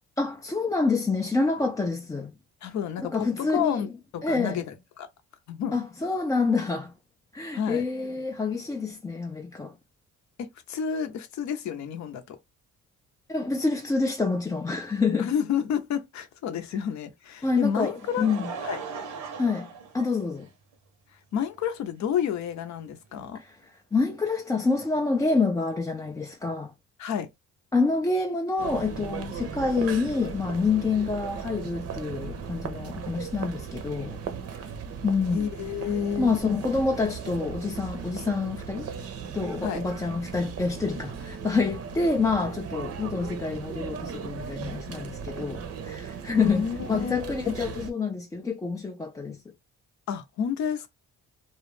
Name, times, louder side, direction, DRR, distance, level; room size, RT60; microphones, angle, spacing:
voice 1, 0.2-2.3 3.0-3.8 4.2-4.6 5.7-6.9 7.3-9.8 13.3-15.3 17.4-18.5 19.4-20.5 23.3-23.6 23.9-26.7 27.7-34.2 35.0-35.5 36.2-49.4, left 4 dB, 10° left, 0.3 m, -27 dB
voice 2, 2.6-5.1 5.5-5.8 7.5-7.8 10.4-12.4 15.1-18.3 18.6-18.8 21.3-23.4 27.0-27.3 35.3-36.3 39.6-39.8 46.4-47.2 47.5-47.6 50.1-50.9, left 8 dB, 65° left, 0.6 m, -30 dB
Laughter, 17.5-20.7 21.6-21.7 23.1-23.2, right 5 dB, 85° right, 0.8 m, -39 dB
sound 1, 28.6-47.9, right 7 dB, 50° right, 0.6 m, -37 dB
2.3 x 2.1 x 3.1 m
cardioid pair, 90°, 30 cm